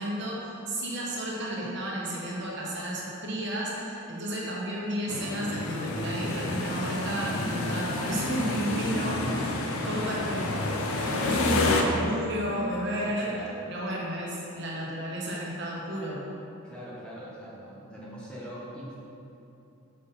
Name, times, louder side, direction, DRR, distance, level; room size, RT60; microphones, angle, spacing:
voice 1, 0.0-9.5 9.8-10.5 10.8-13.3 13.7-16.3, equal, 50° right, -4 dB, 1.2 m, -32 dB
sound 1, 5.1-11.8, left 2 dB, 75° left, 0.6 m, -29 dB
voice 2, 9.4-10.3 13.0-13.7 16.6-19.0, equal, 5° left, -7 dB, 0.9 m, -43 dB
6.2 x 5.4 x 4.1 m, 2.9 s
head